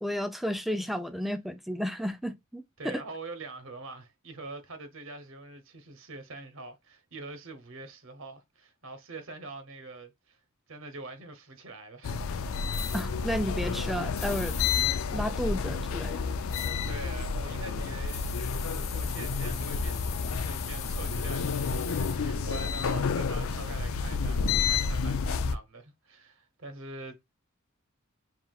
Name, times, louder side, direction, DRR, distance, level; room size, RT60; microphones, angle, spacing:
voice 1, 0.0-3.0 12.9-14.6 15.1-16.2, equal, ahead, 0.4 m, -32 dB
voice 2, 2.8-10.4 10.7-12.2 16.4-16.5 16.9-18.3 18.6-20.0 20.4-27.2, right 2 dB, 70° right, 0.9 m, -44 dB
sound 1, 12.0-25.6, left 5 dB, 85° left, 0.4 m, -30 dB
sound 2, 12.7-13.1 14.2-14.9 16.5-16.7 18.1-22.2, left 8 dB, 35° left, 0.7 m, -41 dB
5.7 x 2.9 x 2.3 m
head